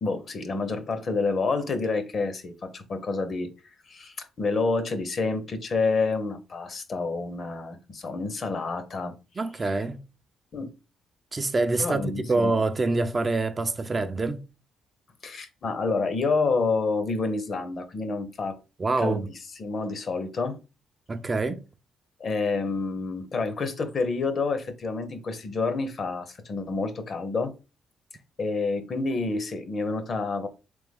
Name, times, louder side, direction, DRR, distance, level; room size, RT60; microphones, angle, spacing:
voice 1, 0.0-3.5 3.9-9.1 9.6-9.8 10.5-10.7 11.8-12.5 15.2-18.6 19.0-19.3 19.6-20.6 22.2-27.5 28.4-30.5, left 3 dB, 50° left, 0.8 m, -28 dB
voice 2, 9.4-10.0 11.3-14.4 18.8-19.3 21.1-21.6, right 3 dB, 30° right, 0.5 m, -26 dB
3.5 x 3.4 x 3.4 m
cardioid pair, 90°, 0 cm